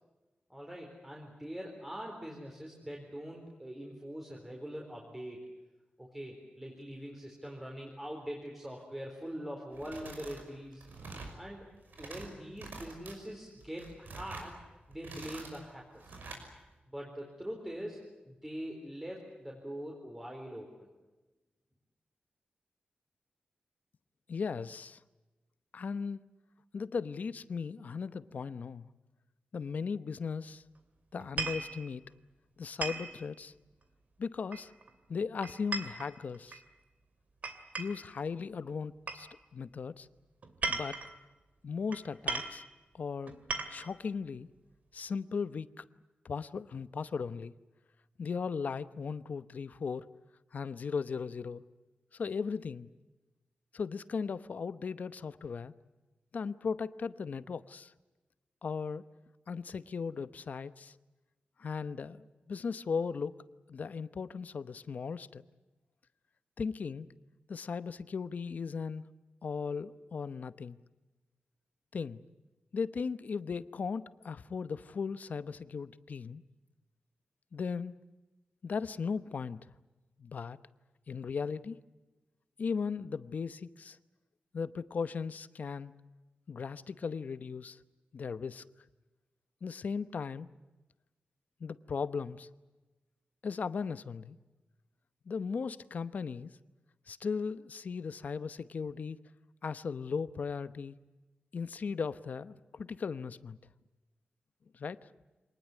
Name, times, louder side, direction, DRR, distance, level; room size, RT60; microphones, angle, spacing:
voice 1, 0.5-5.5 6.0-10.8 11.3-11.6 12.0-14.6 14.9-16.1 16.9-18.0 18.2-20.7, equal, 10° right, -1 dB, 4.1 m, -43 dB
sound 1, 9.7-10.4 10.7-11.4 11.8-12.3 12.6-13.1 13.6-14.5 14.9-15.6 16.0-16.4, right 3 dB, 80° right, 5.9 m, -46 dB
voice 2, 24.3-25.0 25.7-26.2 26.7-28.9 29.5-30.6 31.1-32.0 32.6-33.5 34.2-34.7 35.1-36.6 37.8-40.1 40.7-41.0 41.6-42.6 42.9-43.4 43.7-44.5 44.9-45.8 46.2-47.5 48.2-50.1 50.5-51.6 52.1-52.9 53.7-55.7 56.3-57.9 58.6-59.0 59.5-60.9 61.6-63.3 63.7-65.4 66.6-67.1 67.5-69.0 69.4-70.8 71.9-72.2 72.7-76.4 77.5-77.9 78.6-79.6 80.2-80.6 81.1-81.8 82.6-84.0 84.5-85.9 86.5-87.8 88.1-88.6 89.6-90.5 91.6-92.5 93.4-94.4 95.3-96.5 97.1-99.2 99.6-101.0 101.5-103.6 104.7-105.0, left 5 dB, 60° left, 14 dB, 0.9 m, -37 dB
sound 2, 31.2-31.7 32.8-33.1 34.5-34.9 35.4-36.6 37.4-38.1 39.1-39.2 40.4-41.1 41.9-42.0 42.3-42.6 43.3-43.9, right 4 dB, 55° right, 2.6 m, -36 dB
26.0 x 19.5 x 9.6 m, 1.1 s
wide cardioid pair, 150°, 3 cm